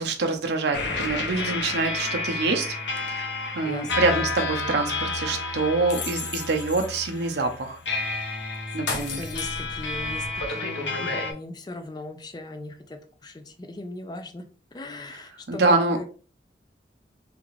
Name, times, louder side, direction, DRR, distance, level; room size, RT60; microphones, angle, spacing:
voice 1, 0.0-2.7 3.1-3.3 3.6-8.0 8.7-9.2 15.5-16.0, right 3 dB, 70° right, 4 dB, 0.6 m, -25 dB
sound 1, 0.7-11.3, left 3 dB, 75° left, 0.7 m, -30 dB
voice 2, 3.6-5.1 8.9-14.5 14.7-16.0, left 2 dB, 25° left, 6 dB, 0.4 m, -39 dB
3.5 x 2.5 x 3.1 m, 0.39 s
head